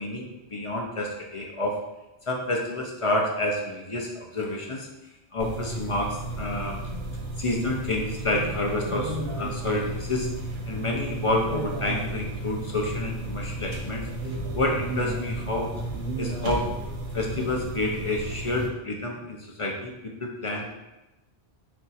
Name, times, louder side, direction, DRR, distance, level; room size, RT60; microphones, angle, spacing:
voice 1, 0.0-1.8 2.3-4.9 5.3-6.8 7.4-10.3 10.7-14.0 14.5-15.7 16.2-16.7 17.1-19.9 20.2-20.7, left 2 dB, 45° left, 0 dB, 0.4 m, -29 dB
sound 1, 5.4-18.7, right 1 dB, 70° right, 0.9 m, -33 dB
4.3 x 2.4 x 4.0 m, 0.98 s
omnidirectional pair, 1.1 m